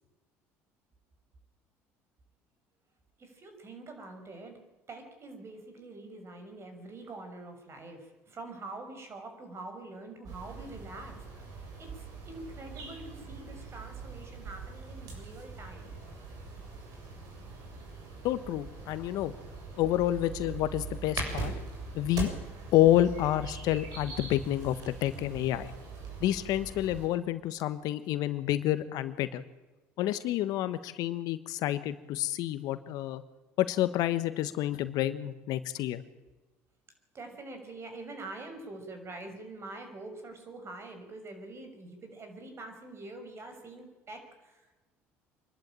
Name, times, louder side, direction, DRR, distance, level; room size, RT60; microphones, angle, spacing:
voice 1, 3.2-4.6 4.9-11.3 11.8-15.9 37.1-44.7, right 2 dB, 40° right, 5 dB, 6.2 m, -45 dB
sound 1, 10.2-27.1, right 4 dB, 65° right, 7.5 m, -42 dB
voice 2, 18.2-19.3 19.8-21.5 21.9-22.3 22.7-25.7 26.2-29.4 30.0-33.2 33.6-36.0, left 13 dB, 70° left, 13 dB, 1.3 m, -29 dB
26.0 x 12.0 x 9.0 m, 1.1 s
hypercardioid pair, 70°, 7 cm